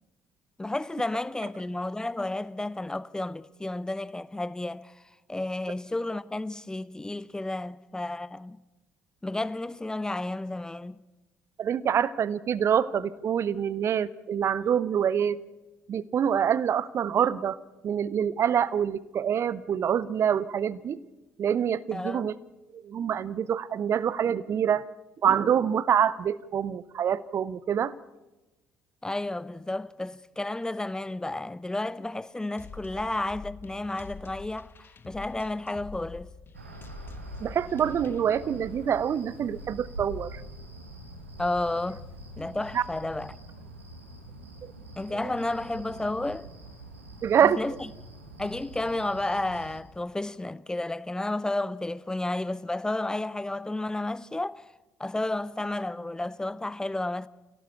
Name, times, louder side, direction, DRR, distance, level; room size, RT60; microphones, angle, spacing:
voice 1, 0.6-5.0 5.3-8.6 9.2-11.0 21.9-22.3 29.0-36.3 41.4-42.1 42.4-43.4 45.0-46.5 47.4-47.7 48.4-54.6 55.0-57.3, left 2 dB, 10° left, 0.7 m, -32 dB
voice 2, 11.6-15.4 15.9-17.6 17.8-21.0 21.4-22.4 22.7-24.9 25.2-27.9 37.4-40.4 42.7-42.8 44.6-44.7 47.2-47.6, right 8 dB, 45° right, 0.8 m, -26 dB
sound 1, 32.6-38.2, left 5 dB, 35° left, 1.3 m, -46 dB
sound 2, 36.5-49.8, right 1 dB, 85° right, 2.0 m, -44 dB
26.5 x 17.0 x 6.9 m
figure-of-eight pair, 50°, 7 cm